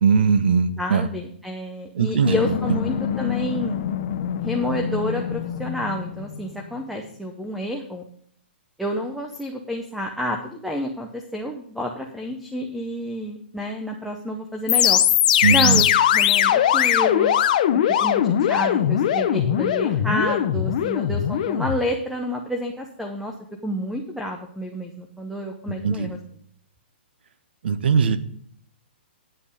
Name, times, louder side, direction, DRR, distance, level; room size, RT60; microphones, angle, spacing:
voice 1, 0.0-1.1 1.9-2.5 15.4-15.8 25.8-26.2 27.6-28.2, right 6 dB, 60° right, 13 dB, 1.0 m, -20 dB
voice 2, 0.8-3.9 4.4-8.0 8.8-15.0 15.5-15.9 16.1-17.3 17.7-23.3 23.6-26.2, left 1 dB, ahead, 3 dB, 0.7 m, -29 dB
sound 1, 2.2-6.4 14.7-21.8, left 10 dB, 40° left, 0.7 m, -21 dB
10.5 x 7.7 x 5.0 m, 0.64 s
hypercardioid pair, 165°, 6 cm